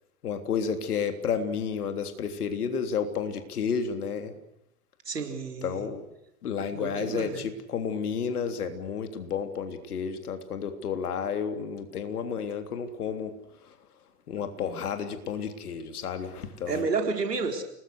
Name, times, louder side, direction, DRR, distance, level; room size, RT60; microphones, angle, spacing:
voice 1, 0.2-4.3 5.6-6.0 6.4-13.3 14.3-16.9, left 6 dB, 70° left, 7 dB, 3.4 m, -31 dB
voice 2, 5.1-5.9 6.7-7.5 16.7-17.6, right 4 dB, 85° right, 4 dB, 4.2 m, -30 dB
29.5 x 20.5 x 6.5 m, 0.81 s
figure-of-eight pair, 100°, 47 cm